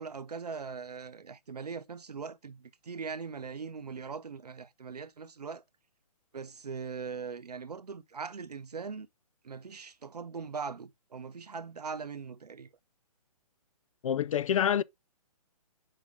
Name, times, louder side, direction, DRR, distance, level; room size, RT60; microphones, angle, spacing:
voice 1, 0.0-5.6 6.3-9.1 9.4-12.7, right 5 dB, 90° right, 0.8 m, -40 dB
voice 2, 14.0-14.8, left 9 dB, 60° left, 0.4 m, -27 dB
7.3 x 5.0 x 3.5 m
hypercardioid pair, 140°, 20 cm